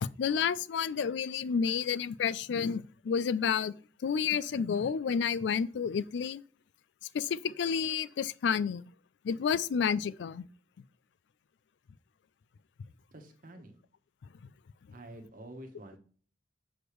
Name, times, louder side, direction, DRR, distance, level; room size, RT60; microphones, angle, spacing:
voice 1, 0.0-3.7 4.0-6.4 7.1-8.8 9.2-10.4, left 6 dB, 70° left, 0.3 m, -30 dB
voice 2, 13.1-13.8 14.9-16.0, right 1 dB, 50° right, 1.1 m, -48 dB
6.1 x 5.0 x 3.1 m
head